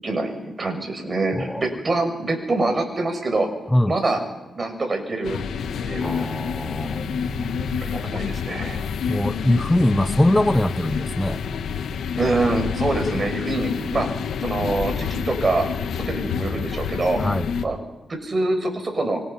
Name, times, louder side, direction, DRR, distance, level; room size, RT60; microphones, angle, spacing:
voice 1, 0.0-3.5 3.9-4.2 4.5-5.4 5.9-6.2 7.8-8.8 12.2-14.1 14.4-15.7 15.9-17.2 17.6-17.8 18.1-19.2, right 2 dB, 40° right, 5 dB, 7.0 m, -25 dB
sound 1, 5.2-17.6, left 6 dB, 85° left, 1.6 m, -28 dB
voice 2, 6.0-7.8 9.1-11.4 17.2-17.5, left 1 dB, 10° left, 12 dB, 0.9 m, -22 dB
27.5 x 26.5 x 5.8 m, 1.0 s
cardioid pair, 60°, 0 cm